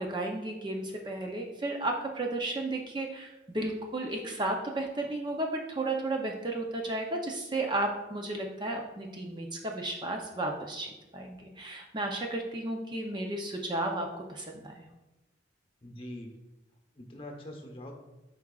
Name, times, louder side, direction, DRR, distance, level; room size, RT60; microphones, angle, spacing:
voice 1, 0.0-14.8, right 2 dB, 25° right, 1 dB, 0.6 m, -33 dB
voice 2, 15.8-16.3 16.9-17.9, left 1 dB, 30° left, 3 dB, 0.9 m, -43 dB
8.6 x 4.7 x 2.4 m, 1.0 s
head